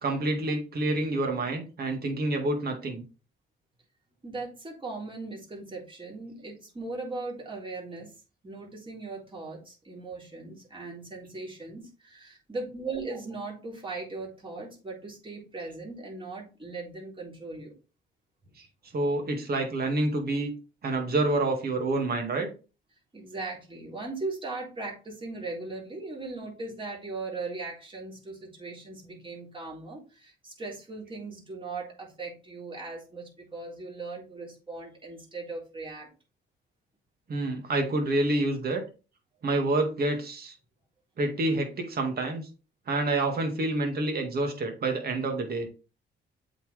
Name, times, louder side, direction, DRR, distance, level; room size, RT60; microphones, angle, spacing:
voice 1, 0.0-3.0 18.6-18.7 18.9-20.5 20.8-22.5 37.3-38.8 39.4-40.5 41.2-42.5 42.9-45.7, right 2 dB, 50° right, 3 dB, 2.1 m, -28 dB
voice 2, 4.2-8.1 8.4-17.7 23.1-36.1, right 3 dB, 25° right, -3 dB, 3.7 m, -38 dB
7.8 x 4.4 x 3.4 m, 0.33 s
cardioid pair, 90°, 20 cm